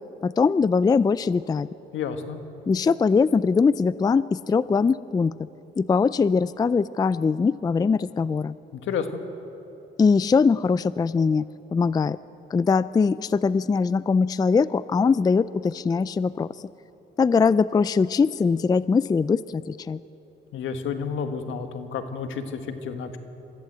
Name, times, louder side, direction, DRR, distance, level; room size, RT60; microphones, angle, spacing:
voice 1, 0.2-1.7 2.7-5.3 5.8-8.6 10.0-11.4 11.7-12.2 12.5-16.5 17.2-20.0, left 5 dB, 20° left, 17 dB, 0.3 m, -21 dB
voice 2, 1.9-2.4 8.7-9.2 20.5-23.2, left 6 dB, 75° left, 7 dB, 1.6 m, -30 dB
23.5 x 14.5 x 8.0 m, 3.0 s
cardioid pair, 90°, 20 cm